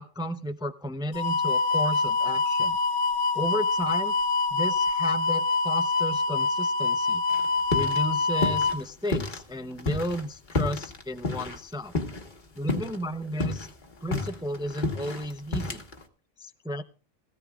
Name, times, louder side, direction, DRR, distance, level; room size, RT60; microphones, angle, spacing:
voice 1, 0.0-2.8 3.3-4.1 4.5-7.2 7.7-11.9 12.6-13.7 14.0-15.8 16.4-16.8, equal, 5° right, 9 dB, 0.5 m, -33 dB
sound 1, 1.1-8.7, left 3 dB, 80° left, 1.2 m, -25 dB
sound 2, 7.3-8.1 8.3-9.4 9.8-12.4 12.7-13.0 13.3-16.0, left 2 dB, 40° left, 1.6 m, -30 dB
17.0 x 16.0 x 2.4 m, 0.37 s
omnidirectional pair, 1.2 m